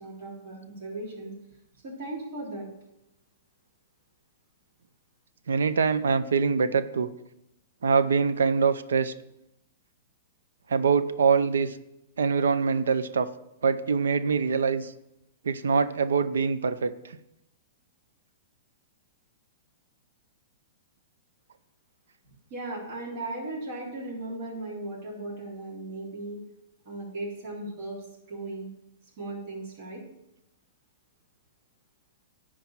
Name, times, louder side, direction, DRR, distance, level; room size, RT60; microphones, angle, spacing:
voice 1, 0.0-1.3 1.8-2.7 22.5-26.4 26.9-28.7 29.2-30.0, right 2 dB, 55° right, -4 dB, 3.6 m, -37 dB
voice 2, 5.5-7.1 7.8-9.1 10.7-11.8 12.2-13.3 13.6-14.9 15.4-16.9, right 5 dB, 85° right, 14 dB, 0.6 m, -24 dB
10.5 x 4.6 x 7.3 m, 0.86 s
hypercardioid pair, 130°, 0 cm